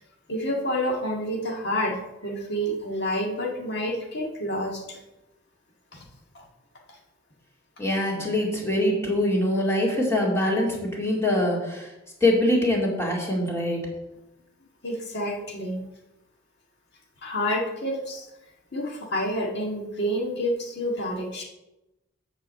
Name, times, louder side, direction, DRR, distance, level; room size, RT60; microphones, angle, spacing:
voice 1, 0.3-5.0 5.9-6.1 14.8-15.8 17.2-18.3 18.7-21.4, equal, 55° left, 0 dB, 1.9 m, -28 dB
voice 2, 7.8-11.9 12.2-13.8, left 1 dB, 15° left, -3 dB, 2.3 m, -24 dB
8.2 x 5.0 x 7.5 m, 0.97 s
head